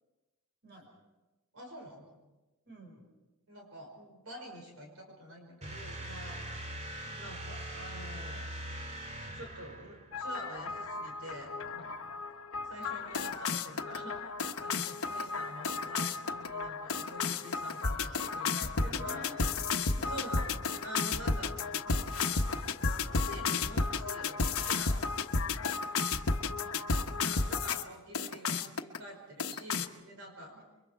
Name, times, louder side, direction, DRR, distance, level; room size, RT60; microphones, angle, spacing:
voice 1, 1.5-2.2 3.5-6.6 7.2-8.4 9.3-12.0 12.6-14.3 14.6-19.3 20.1-20.5 20.8-22.7 23.1-25.2 27.2-30.6, equal, 70° right, 1 dB, 5.3 m, -47 dB
voice 2, 2.7-3.1 7.0-7.2 18.8-20.5 26.3-26.9 30.5-30.6, right 1 dB, 50° right, 3 dB, 5.4 m, -51 dB
Capital Class Signature Detected (Reverb), 5.6-10.3, right 1 dB, 30° right, 2.3 m, -42 dB
sound 1, 10.1-27.8 28.1-29.0 29.4-29.9, left 4 dB, 70° left, 1.2 m, -33 dB
28.5 x 24.0 x 4.6 m, 1.1 s
head